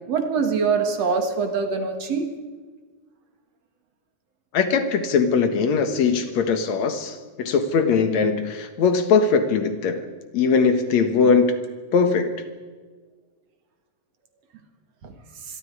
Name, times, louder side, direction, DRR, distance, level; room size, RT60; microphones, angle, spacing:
voice 1, 0.1-2.3, right 5 dB, 60° right, 7 dB, 2.9 m, -23 dB
voice 2, 4.5-10.1 10.3-11.5 11.9-12.3, left 5 dB, 65° left, 9 dB, 2.6 m, -20 dB
25.5 x 23.0 x 4.9 m, 1.4 s
omnidirectional pair, 3.5 m